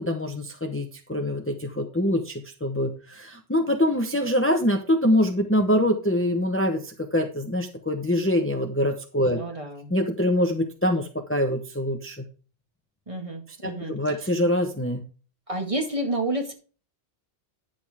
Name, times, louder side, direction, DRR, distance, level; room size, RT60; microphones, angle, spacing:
voice 1, 0.0-9.4 9.9-12.3 13.6-15.1, left 1 dB, 10° left, 4 dB, 1.0 m, -24 dB
voice 2, 9.3-9.9 13.1-13.9 15.5-16.5, right 1 dB, 30° right, 2 dB, 2.0 m, -29 dB
10.5 x 7.0 x 3.6 m, 0.36 s
omnidirectional pair, 1.2 m